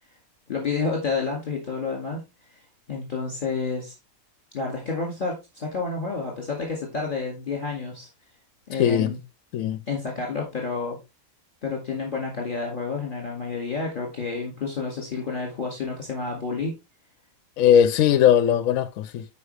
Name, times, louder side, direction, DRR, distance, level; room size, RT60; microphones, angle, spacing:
voice 1, 0.5-2.2 2.9-3.9 4.5-8.1 8.7-9.2 9.9-11.0 11.6-16.7, left 4 dB, 35° left, 2.3 m, -29 dB
voice 2, 8.8-9.1 9.5-9.8 17.6-19.3, left 9 dB, 75° left, 1.0 m, -19 dB
9.8 x 5.2 x 3.2 m
omnidirectional pair, 1.5 m